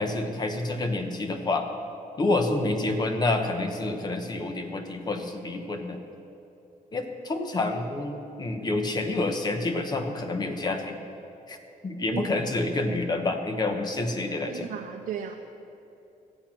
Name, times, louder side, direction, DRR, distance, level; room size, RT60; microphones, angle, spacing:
voice 1, 0.0-1.6 2.2-6.0 6.9-11.0 11.5-11.6 11.8-14.7, left 2 dB, 30° left, 5 dB, 1.0 m, -28 dB
voice 2, 14.5-15.3, right 8 dB, 65° right, 2 dB, 0.7 m, -34 dB
14.0 x 8.8 x 6.0 m, 2.8 s
cardioid pair, 155°, 15 cm